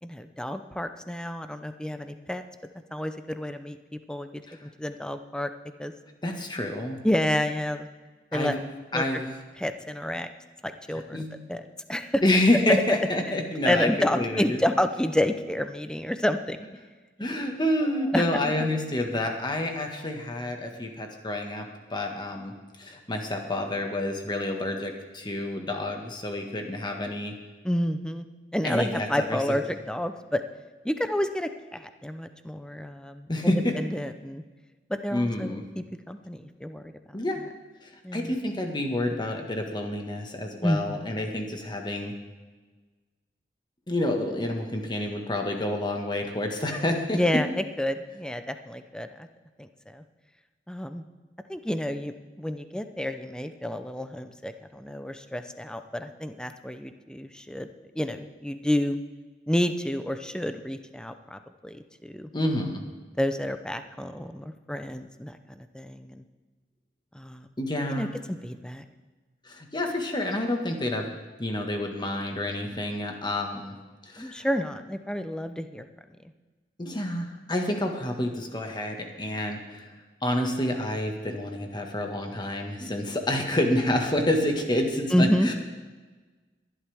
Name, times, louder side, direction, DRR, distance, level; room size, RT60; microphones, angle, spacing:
voice 1, 0.0-2.4 2.9-5.5 5.8-5.9 7.0-7.9 8.3-8.6 8.9-9.2 9.6-10.3 10.6-11.6 11.9-12.2 13.6-16.7 18.1-18.2 27.6-28.3 28.5-30.4 30.8-34.4 34.9-36.9 38.0-38.4 40.6-41.0 47.1-49.3 49.6-50.0 50.7-51.0 51.5-57.7 57.9-59.0 59.5-62.3 63.2-66.2 67.1-67.5 67.9-68.1 68.4-68.8 74.2-75.9 85.1-85.5, left 1 dB, 5° left, 8 dB, 0.7 m, -29 dB
voice 2, 6.2-7.0 8.3-8.6 8.9-9.3 11.1-11.3 12.2-14.6 17.2-22.5 22.8-27.3 28.6-29.6 33.3-33.7 35.1-35.6 37.1-37.4 37.8-42.1 43.9-47.2 62.3-62.8 67.6-68.2 69.4-73.7 74.1-74.3 76.8-79.9 80.2-85.5, left 1 dB, 25° left, 3 dB, 1.7 m, -28 dB
21.5 x 11.5 x 3.6 m, 1.3 s
head